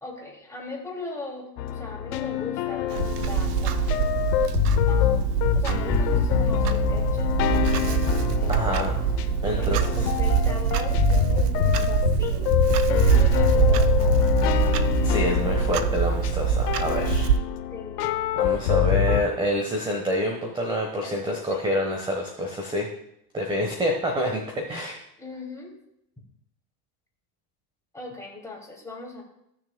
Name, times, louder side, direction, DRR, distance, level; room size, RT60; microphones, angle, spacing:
voice 1, 0.0-3.9 4.8-9.1 9.6-14.7 17.7-18.3 21.0-21.6 25.2-25.7 27.9-29.2, left 3 dB, 5° left, -2 dB, 2.6 m, -39 dB
sound 1, 1.6-19.2, left 10 dB, 70° left, 1.0 m, -25 dB
Clock, 2.9-17.4, right 8 dB, 70° right, 0.8 m, -24 dB
voice 2, 8.5-8.9 9.4-9.9 15.0-17.3 18.4-22.9 23.3-25.0, equal, 10° right, 1 dB, 1.2 m, -27 dB
15.5 x 6.5 x 2.3 m, 0.79 s
supercardioid pair, 115°, 49 cm